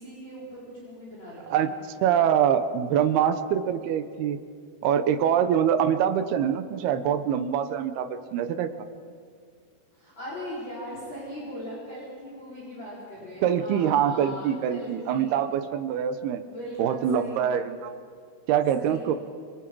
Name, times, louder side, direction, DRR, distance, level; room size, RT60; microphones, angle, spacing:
voice 1, 0.0-1.7 9.9-15.4 16.3-17.5 18.7-19.1, equal, 25° left, -6 dB, 5.1 m, -39 dB
voice 2, 2.0-4.4 4.8-8.7 13.4-16.4 16.8-17.9 18.5-19.1, right 9 dB, 75° right, 10 dB, 2.5 m, -24 dB
28.0 x 25.0 x 4.7 m, 2.2 s
omnidirectional pair, 5.3 m